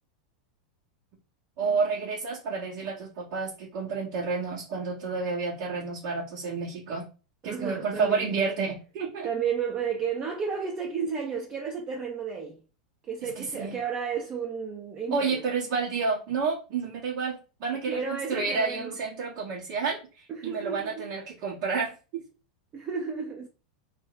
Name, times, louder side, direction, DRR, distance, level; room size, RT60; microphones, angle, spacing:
voice 1, 1.6-7.1 7.4-9.3 13.2-13.8 15.1-22.2, right 4 dB, 55° right, 1.2 m, -30 dB
voice 2, 7.4-8.3 9.2-12.6 13.1-15.4 17.9-19.0 20.3-21.1 22.7-23.5, right 6 dB, 30° right, 0.6 m, -32 dB
2.6 x 2.1 x 4.0 m
hypercardioid pair, 115°, 4 cm